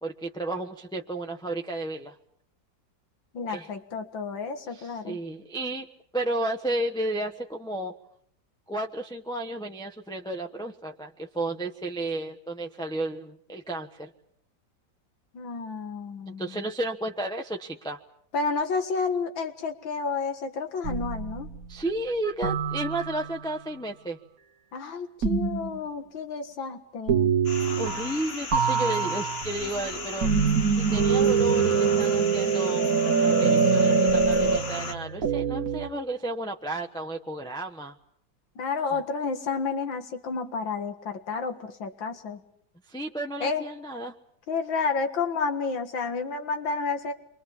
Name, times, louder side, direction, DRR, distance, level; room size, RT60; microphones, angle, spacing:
voice 1, 0.0-2.1 3.5-3.7 4.7-5.9 6.1-7.9 8.7-14.1 16.4-18.0 21.7-24.2 27.8-30.3 30.8-32.9 33.2-37.9 42.9-44.1, right 1 dB, 5° left, 1 dB, 0.7 m, -32 dB
voice 2, 3.3-5.2 15.3-16.7 18.3-21.5 24.7-27.3 38.6-42.4 43.4-43.6 44.5-47.1, left 4 dB, 85° left, 6 dB, 2.4 m, -30 dB
sound 1, 20.8-21.6 22.4-23.5 25.2-25.8 27.1-28.2 28.5-35.9, right 5 dB, 50° right, 1.7 m, -24 dB
sound 2, 27.4-34.9, left 4 dB, 35° left, 1.4 m, -36 dB
28.5 x 24.0 x 7.2 m, 0.68 s
omnidirectional pair, 2.0 m